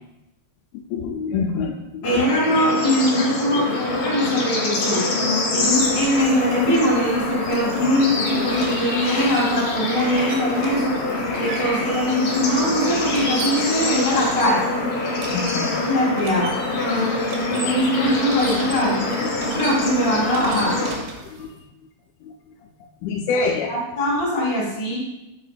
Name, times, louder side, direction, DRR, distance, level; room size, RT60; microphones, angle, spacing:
voice 1, 0.9-2.2 2.5-2.6 3.5-3.7 4.2-4.3 15.3-15.7 19.4-19.5 21.4-21.5 23.0-23.7, left 4 dB, 80° left, 2 dB, 2.2 m, -26 dB
Bird / Insect / Frog, 2.0-20.9, left 2 dB, 55° left, 1.8 m, -25 dB
voice 2, 2.0-5.0 5.5-10.9 11.4-14.7 15.9-16.5 17.3-19.0 19.4-20.8 23.3-25.0, equal, 20° left, -5 dB, 1.8 m, -22 dB
sound 1, 5.3-21.6, right 2 dB, 75° right, 2.4 m, -38 dB
6.0 x 4.7 x 4.1 m, 0.94 s
omnidirectional pair, 4.4 m